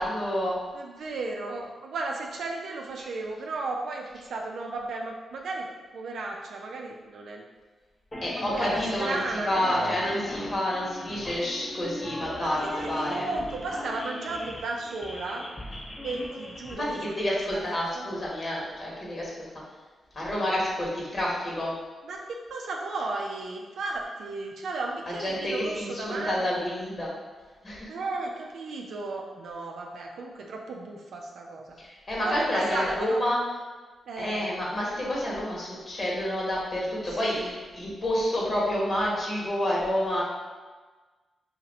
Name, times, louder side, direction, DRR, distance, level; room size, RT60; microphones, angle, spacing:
voice 1, 0.0-0.6 8.2-9.2 9.4-13.3 16.8-19.3 20.1-21.7 25.2-27.1 27.6-27.9 31.8-33.4 34.2-40.2, left 1 dB, 50° left, -5 dB, 1.3 m, -29 dB
voice 2, 0.7-5.7 5.9-7.5 8.4-9.9 12.4-15.4 16.0-18.1 22.0-26.7 27.9-31.8 32.2-33.2 34.1-34.5 37.1-37.5, right 3 dB, 75° right, 0 dB, 0.3 m, -34 dB
sound 1, 8.1-16.7, left 1 dB, 30° left, 0.7 m, -38 dB
2.7 x 2.5 x 4.0 m, 1.3 s
supercardioid pair, 45°, 0 cm